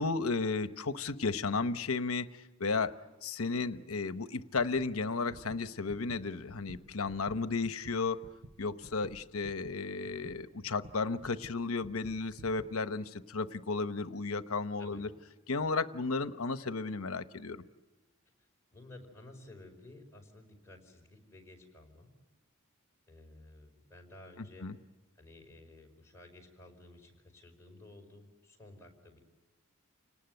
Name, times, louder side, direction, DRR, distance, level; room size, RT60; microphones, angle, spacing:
voice 1, 0.0-8.2 8.6-15.1 15.5-17.6 24.6-24.7, left 4 dB, 80° left, 11 dB, 1.0 m, -34 dB
sound 1, 4.8-4.9 5.2-12.8, right 1 dB, 85° right, 1.2 m, -53 dB
voice 2, 18.4-22.1 23.1-24.7 25.1-29.2, left 2 dB, 15° left, 1 dB, 5.0 m, -54 dB
30.0 x 19.0 x 7.9 m, 1.2 s
head